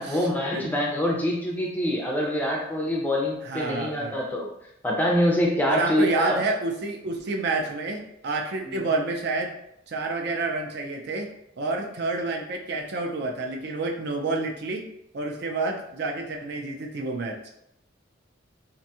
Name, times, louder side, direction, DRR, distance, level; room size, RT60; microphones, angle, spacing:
voice 1, 0.0-4.5 4.8-6.4 8.6-8.9, left 1 dB, 10° left, -2 dB, 0.4 m, -25 dB
voice 2, 3.4-4.2 5.7-9.5 9.9-11.3 11.6-14.8 15.1-17.5, right 3 dB, 60° right, 2 dB, 0.4 m, -29 dB
2.5 x 2.2 x 2.7 m, 0.77 s
head